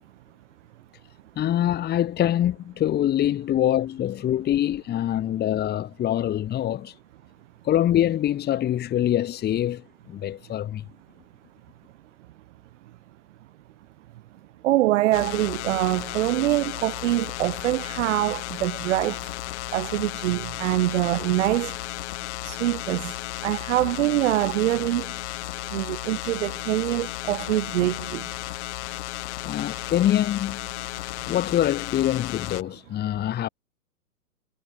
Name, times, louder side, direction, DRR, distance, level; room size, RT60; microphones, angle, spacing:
voice 1, 1.4-6.9 7.6-10.8 29.4-30.7 31.3-33.5, left 12 dB, 20° left, 2.6 m, -24 dB
voice 2, 14.6-19.3 19.7-21.7 22.4-23.2 23.4-25.1 25.7-28.2, right 16 dB, 50° right, 2.2 m, -24 dB
sound 1, 15.1-32.6, left 19 dB, 45° left, 6.0 m, -34 dB
hypercardioid pair, 125°, 46 cm